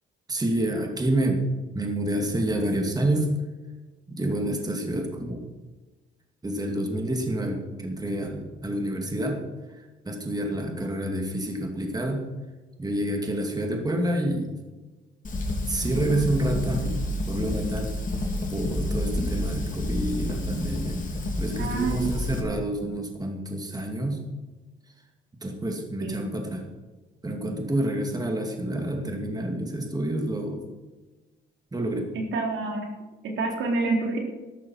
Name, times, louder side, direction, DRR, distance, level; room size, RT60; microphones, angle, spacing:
voice 1, 0.3-1.4 1.7-3.3 4.1-5.4 6.4-9.4 10.1-12.2 12.8-14.5 15.7-17.0 17.3-17.9 18.5-21.0 21.4-24.2 25.4-26.6 27.2-30.6 31.7-32.1, right 1 dB, 20° right, 2 dB, 2.5 m, -28 dB
Fire, 15.2-22.4, left 1 dB, 40° left, 3.4 m, -29 dB
voice 2, 21.6-22.1 26.0-26.2 32.2-32.9 33.2-34.2, right 3 dB, 75° right, 1 dB, 3.6 m, -27 dB
13.0 x 12.5 x 4.6 m, 1.2 s
cardioid pair, 90°, 20 cm